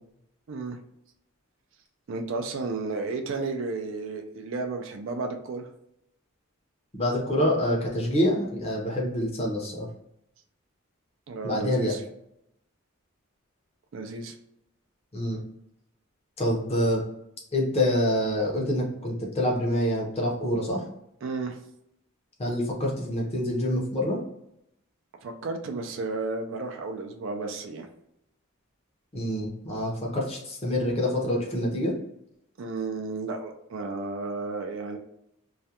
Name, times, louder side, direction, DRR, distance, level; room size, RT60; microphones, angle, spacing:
voice 1, 0.5-0.8 2.1-5.7 11.3-12.0 13.9-14.3 21.2-21.6 25.2-27.9 32.6-35.0, right 3 dB, 60° right, 4 dB, 0.3 m, -33 dB
voice 2, 6.9-9.9 11.4-11.9 15.1-15.4 16.4-17.0 17.5-20.8 22.4-24.2 29.1-31.9, left 1 dB, 30° left, -2 dB, 0.6 m, -26 dB
2.3 x 2.1 x 2.8 m, 0.79 s
head